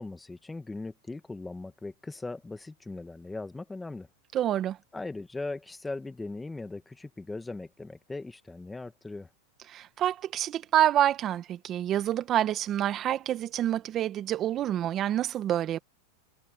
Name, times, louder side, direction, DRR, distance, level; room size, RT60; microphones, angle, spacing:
voice 1, 0.0-4.1 4.9-9.3, left 3 dB, 10° left, 1.6 m, -39 dB
voice 2, 4.3-4.8 9.7-15.8, right 11 dB, 35° right, 1.7 m, -27 dB
hypercardioid pair, 120°, 0 cm